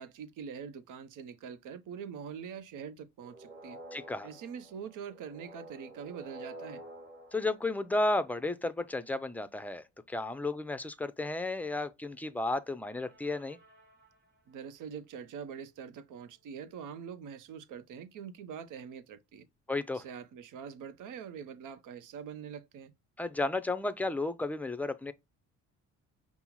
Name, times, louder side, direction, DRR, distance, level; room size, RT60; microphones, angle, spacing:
voice 1, 0.0-3.8 4.2-6.8 14.5-19.5 19.9-22.9, right 7 dB, 80° right, 0.7 m, -44 dB
sound 1, 3.2-8.5 12.8-14.5, right 1 dB, 35° right, 1.5 m, -51 dB
voice 2, 3.9-4.3 7.3-13.6 19.7-20.0 23.2-25.1, left 2 dB, 5° left, 0.4 m, -33 dB
5.4 x 2.0 x 4.4 m
cardioid pair, 110°, 31 cm